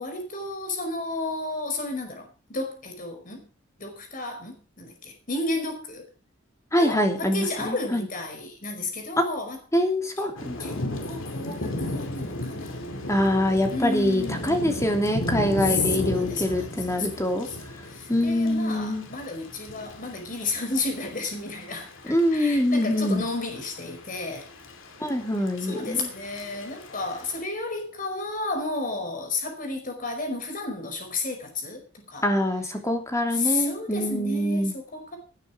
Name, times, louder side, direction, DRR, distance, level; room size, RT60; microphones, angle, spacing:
voice 1, 0.0-3.5 3.8-6.1 6.8-9.6 10.6-13.0 13.7-15.2 15.6-21.9 22.3-24.5 25.7-32.3 33.3-35.2, left 3 dB, 45° left, 5.2 m, -32 dB
voice 2, 6.7-8.0 9.2-9.3 9.7-10.7 13.1-17.5 18.1-19.0 22.0-23.2 25.0-26.1 32.2-34.7, left 1 dB, 15° left, 2.9 m, -24 dB
Thunder / Rain, 10.4-27.4, left 1 dB, 75° left, 2.6 m, -35 dB
18.0 x 9.1 x 5.1 m
head